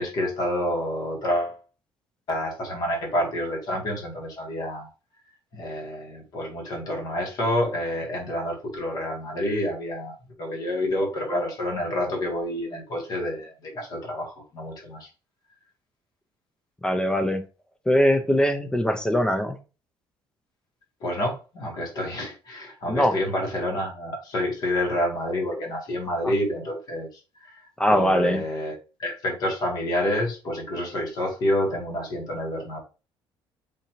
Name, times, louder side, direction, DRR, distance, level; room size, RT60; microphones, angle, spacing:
voice 1, 0.0-1.6 2.3-4.9 5.5-15.1 21.0-27.1 27.4-27.6 27.9-32.8, left 1 dB, 45° left, 0 dB, 1.3 m, -28 dB
voice 2, 16.8-17.4 17.9-19.6 22.9-23.2 26.2-26.3 27.8-28.4, equal, 10° left, 7 dB, 0.3 m, -21 dB
3.8 x 2.6 x 2.9 m, 0.33 s
cardioid pair, 160°, 9 cm